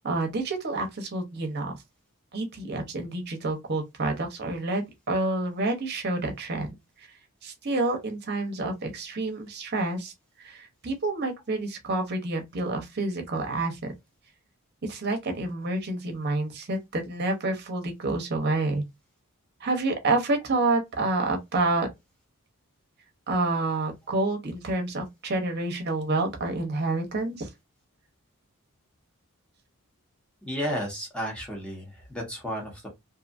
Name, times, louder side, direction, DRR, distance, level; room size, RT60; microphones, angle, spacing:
voice 1, 0.0-1.7 2.3-6.8 7.4-10.1 10.4-13.9 14.8-18.8 19.6-21.9 23.3-27.5, right 2 dB, 45° right, 0.7 m, -28 dB
voice 2, 30.4-32.9, equal, 5° left, 1.0 m, -33 dB
2.6 x 2.5 x 2.5 m
head